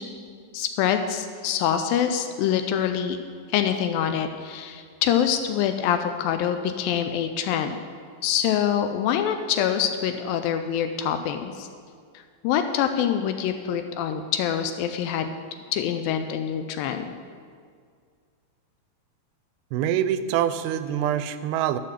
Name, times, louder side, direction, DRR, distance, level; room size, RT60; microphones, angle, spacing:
voice 1, 0.5-3.2 3.5-7.8 8.2-11.7 12.4-15.3 15.7-17.2, left 9 dB, 80° left, 7 dB, 2.2 m, -25 dB
voice 2, 19.7-21.8, right 10 dB, 90° right, 12 dB, 2.5 m, -25 dB
12.0 x 4.7 x 7.4 m, 2.1 s
omnidirectional pair, 4.4 m